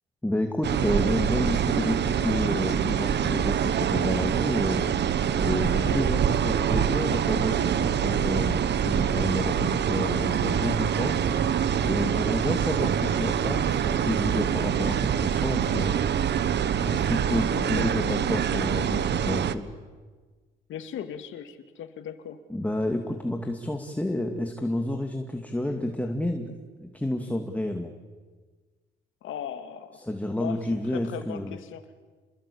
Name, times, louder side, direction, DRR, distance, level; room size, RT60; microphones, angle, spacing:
voice 1, 0.2-4.9 5.4-11.2 11.8-15.9 16.8-19.7 22.5-26.5 26.8-27.9 29.9-31.6, left 1 dB, 5° left, 4 dB, 2.5 m, -30 dB
sound 1, 0.6-19.6, right 8 dB, 60° right, 1.3 m, -25 dB
voice 2, 17.5-18.3 20.7-22.4 29.2-30.0 30.4-31.8, left 9 dB, 80° left, 9 dB, 2.4 m, -38 dB
29.5 x 22.0 x 8.7 m, 1.4 s
cardioid pair, 90°, 20 cm